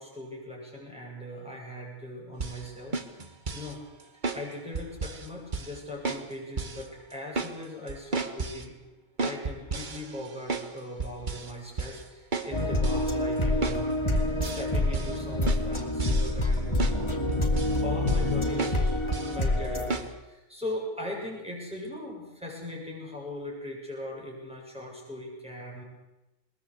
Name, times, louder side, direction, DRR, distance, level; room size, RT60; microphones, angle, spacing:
voice 1, 0.0-3.8 4.3-8.7 9.2-13.9 14.4-18.9 19.2-25.8, left 1 dB, 5° right, -2 dB, 7.7 m, -39 dB
sound 1, 2.4-2.6 2.9-3.7 4.2-4.4 4.7-5.3 5.5-5.8 6.0-6.3 6.6-6.8 7.1-7.5 7.9-8.6 9.2-10.7 11.0-11.5 11.8-12.0 12.3-12.5 12.8-13.1 13.6-13.8 14.1-14.7 14.9-15.2 15.5-16.5 16.8-17.0 17.3-17.8 18.1-18.3 18.6-18.8 19.1-19.4 19.9-20.1, right 3 dB, 35° right, 1.5 m, -32 dB
sound 2, 12.5-19.9, left 1 dB, 20° left, 2.3 m, -27 dB
21.5 x 20.5 x 8.3 m, 0.98 s
omnidirectional pair, 1.4 m